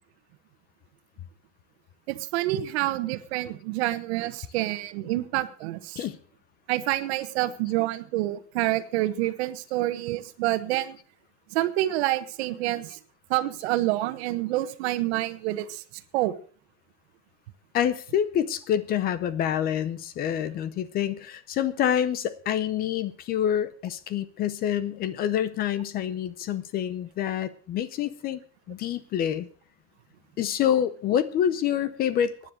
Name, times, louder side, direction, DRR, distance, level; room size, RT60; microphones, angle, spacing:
voice 1, 2.1-6.0 6.7-11.0 11.5-13.0 13.3-15.8 16.1-16.3, right 16 dB, 65° right, 12 dB, 1.4 m, -27 dB
voice 2, 17.7-28.4 28.7-29.5 30.4-32.5, left 9 dB, 25° left, 17 dB, 0.7 m, -27 dB
14.5 x 10.0 x 6.4 m, 0.42 s
supercardioid pair, 175°, 34 cm